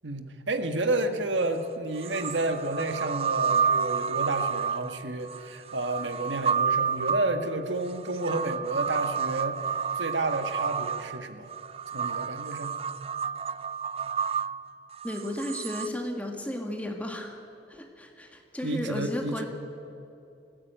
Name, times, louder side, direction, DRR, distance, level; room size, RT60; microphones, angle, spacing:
voice 1, 0.0-11.5 11.9-12.8 18.6-19.4, right 2 dB, 85° right, 8 dB, 1.5 m, -31 dB
sound 1, 1.4-1.5 2.0-15.9, right 6 dB, 30° right, 0.4 m, -30 dB
voice 2, 15.0-17.4 17.7-19.4, left 1 dB, 10° left, 2 dB, 1.9 m, -34 dB
19.0 x 15.5 x 9.0 m, 2.6 s
head